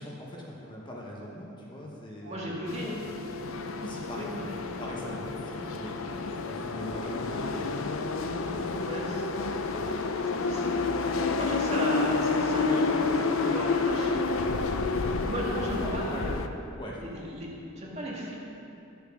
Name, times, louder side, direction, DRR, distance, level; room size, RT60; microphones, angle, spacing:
voice 1, 0.0-2.7 3.8-4.5 4.8-6.0 6.5-7.7 8.5-9.1 15.8-16.2 16.7-17.2, left 1 dB, 20° left, -3 dB, 1.0 m, -41 dB
Brass instrument, 2.2-9.9, left 2 dB, 85° right, 1.3 m, -44 dB
voice 2, 2.3-3.0 4.1-4.4 7.1-7.4 8.8-9.2 10.2-10.8 11.4-13.0 13.4-14.7 15.2-16.4 17.0-17.5 17.8-18.3, right 1 dB, 30° right, -4 dB, 1.9 m, -36 dB
sound 1, 2.7-16.5, left 4 dB, 80° left, 0.6 m, -29 dB
10.5 x 6.9 x 6.1 m, 2.8 s
head